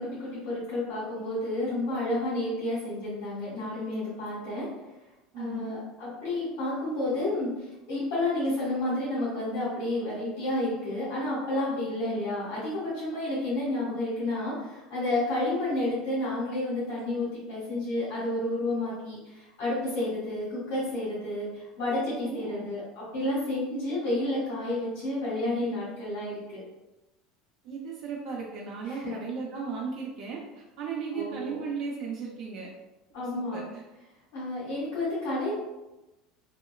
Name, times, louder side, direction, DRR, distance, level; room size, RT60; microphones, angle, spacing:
voice 1, 0.0-4.7 5.4-26.6 28.9-29.1 31.1-31.6 33.1-33.6 34.3-35.5, left 1 dB, 85° left, -10 dB, 1.4 m, -30 dB
voice 2, 5.3-5.7 22.2-22.7 27.6-32.7 33.3-33.8, right 5 dB, 60° right, -2 dB, 0.5 m, -36 dB
2.8 x 2.2 x 2.2 m, 1.0 s
supercardioid pair, 100°, 0 cm